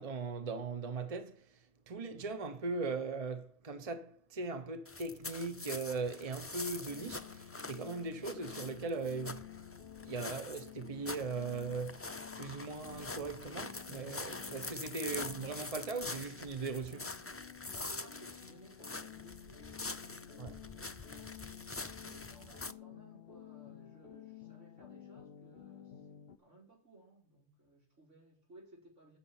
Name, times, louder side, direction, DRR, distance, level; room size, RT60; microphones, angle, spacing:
voice 1, 0.0-1.6 1.9-9.5 10.0-17.1 20.4-20.5, right 4 dB, 30° right, 1.1 m, -39 dB
sound 1, 4.9-22.7, left 3 dB, 25° left, 0.3 m, -45 dB
sound 2, 6.9-26.4, left 10 dB, 60° left, 1.0 m, -52 dB
voice 2, 15.0-15.5 17.7-21.4 22.0-29.2, right 1 dB, 90° right, 5.1 m, -60 dB
9.8 x 7.3 x 8.8 m
omnidirectional pair, 1.2 m